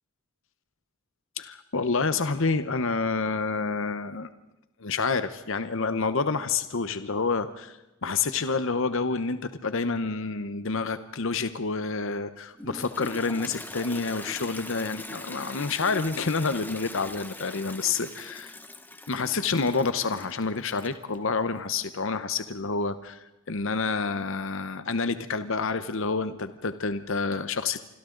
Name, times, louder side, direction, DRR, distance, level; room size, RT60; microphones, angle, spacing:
voice 1, 1.4-4.3 4.8-18.4 19.1-27.8, left 4 dB, 60° left, 11 dB, 0.9 m, -28 dB
Toilet flush, 12.6-21.1, left 2 dB, 10° left, 0.9 m, -42 dB
26.5 x 25.5 x 3.9 m, 0.99 s
head